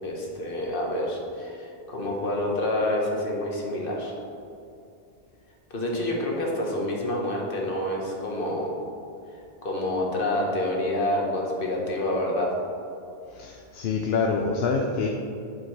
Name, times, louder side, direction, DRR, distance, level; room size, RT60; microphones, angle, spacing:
voice 1, 0.0-4.2 5.7-8.8 9.6-12.5, left 1 dB, 60° left, -1 dB, 1.5 m, -28 dB
voice 2, 13.3-15.1, left 4 dB, 80° left, 1 dB, 0.9 m, -26 dB
9.0 x 6.8 x 3.2 m, 2.6 s
omnidirectional pair, 1.1 m